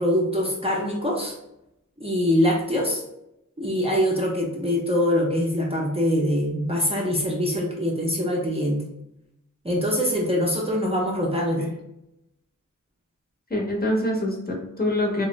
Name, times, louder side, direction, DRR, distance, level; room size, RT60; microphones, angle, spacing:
voice 1, 0.0-1.4 2.0-3.0 3.6-8.8 9.6-11.7, equal, 20° right, -3 dB, 0.5 m, -23 dB
voice 2, 13.5-15.3, left 1 dB, 30° left, -1 dB, 0.7 m, -25 dB
2.5 x 2.0 x 3.0 m, 0.86 s
wide cardioid pair, 55°, 32 cm